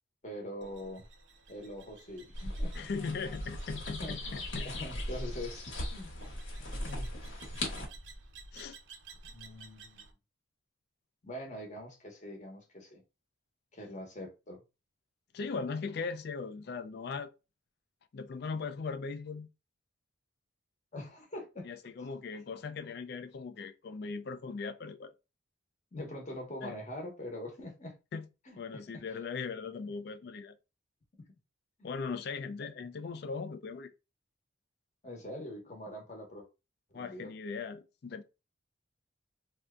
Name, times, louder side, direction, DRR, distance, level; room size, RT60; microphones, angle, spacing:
voice 1, 0.2-1.0 1.5-2.9 4.0-5.6 5.9-6.1 6.9-7.1 9.2-10.1 11.2-13.0 13.7-14.6 20.9-21.7 22.0-22.1 25.9-28.0 28.5-28.6 28.9-29.0 29.8-29.9 32.6-32.7 35.0-36.5 36.9-37.3, left 1 dB, 35° left, 0.9 m, -43 dB
sound 1, 0.6-10.1, right 1 dB, 70° right, 0.6 m, -49 dB
sound 2, 2.3-7.9, left 1 dB, 75° left, 1.1 m, -38 dB
voice 2, 2.7-4.7 8.5-8.8 15.3-17.3 18.1-19.5 21.6-25.1 26.6-26.7 28.1-28.3 28.6-30.5 31.8-33.9 36.9-38.2, left 4 dB, 55° left, 0.3 m, -39 dB
2.7 x 2.2 x 3.5 m
head